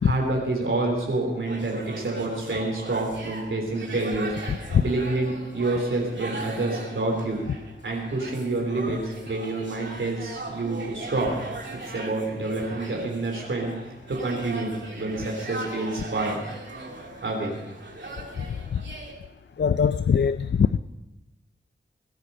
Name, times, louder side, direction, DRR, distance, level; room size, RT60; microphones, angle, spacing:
voice 1, 0.0-4.3 4.8-7.4 7.8-11.3 11.7-13.7 14.1-14.7 14.9-16.4 17.2-17.6, right 2 dB, 85° right, 0 dB, 3.4 m, -28 dB
sound 1, 1.4-19.1, right 2 dB, 65° right, 2.8 m, -39 dB
voice 2, 4.5-4.8 18.7-18.8 19.6-20.8, left 7 dB, 65° left, 13 dB, 0.4 m, -21 dB
22.0 x 9.9 x 5.5 m, 0.96 s
wide cardioid pair, 55°, 20 cm